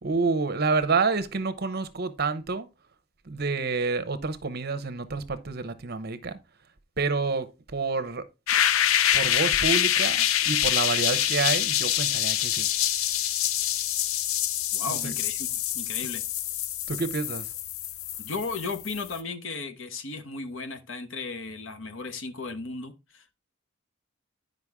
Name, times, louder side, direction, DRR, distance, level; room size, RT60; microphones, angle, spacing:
voice 1, 0.0-2.7 3.2-6.4 7.0-8.2 9.1-12.7 14.9-15.1 16.9-17.5, right 4 dB, 50° right, 0.8 m, -28 dB
sound 1, 8.5-19.2, left 11 dB, 90° left, 0.5 m, -26 dB
voice 2, 14.7-15.5 15.7-16.2 18.2-23.4, left 3 dB, 70° left, 1.0 m, -35 dB
9.6 x 5.3 x 3.6 m
head